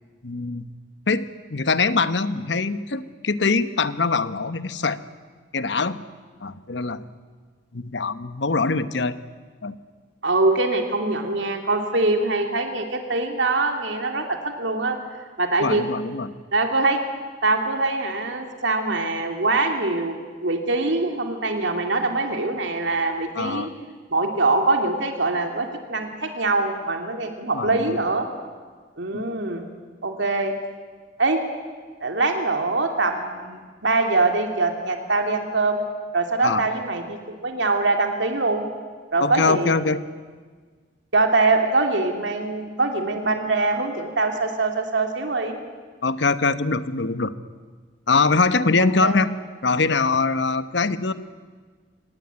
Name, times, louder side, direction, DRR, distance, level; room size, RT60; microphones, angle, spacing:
voice 1, 0.2-0.6 1.1-5.0 5.5-6.0 6.4-7.0 7.7-9.2 9.6-9.8 15.6-16.3 23.3-23.7 27.5-28.0 29.1-29.3 36.4-36.6 39.2-40.0 46.0-47.3 48.1-49.3 49.6-51.1, left 4 dB, 70° left, 13 dB, 1.0 m, -23 dB
voice 2, 10.2-15.0 15.4-15.8 16.5-17.0 17.4-23.7 24.1-28.3 29.0-29.7 30.0-30.5 31.2-31.4 32.0-35.8 36.1-38.7 39.1-39.7 41.1-45.6 49.0-49.2, right 3 dB, 80° right, 4 dB, 2.7 m, -23 dB
24.5 x 19.5 x 9.6 m, 1.5 s
head